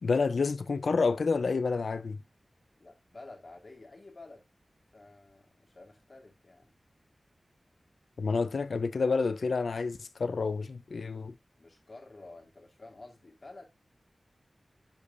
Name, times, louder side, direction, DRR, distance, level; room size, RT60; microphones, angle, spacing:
voice 1, 0.0-2.2 8.2-11.3, left 4 dB, 85° left, 0.6 m, -29 dB
voice 2, 2.8-4.4 4.9-6.7 11.6-13.7, left 2 dB, 55° left, 3.0 m, -51 dB
10.5 x 5.0 x 2.6 m
wide cardioid pair, 70°, 0 cm